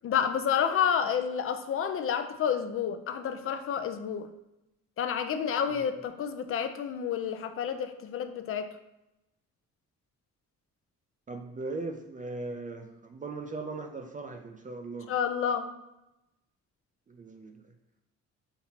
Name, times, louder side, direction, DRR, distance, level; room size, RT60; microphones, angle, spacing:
voice 1, 0.0-4.3 5.0-8.7 15.1-15.6, left 8 dB, 45° left, 8 dB, 0.5 m, -29 dB
voice 2, 11.3-15.1 17.1-17.7, right 3 dB, 25° right, 4 dB, 0.4 m, -39 dB
5.9 x 2.8 x 2.8 m, 0.91 s
cardioid pair, 90°, 30 cm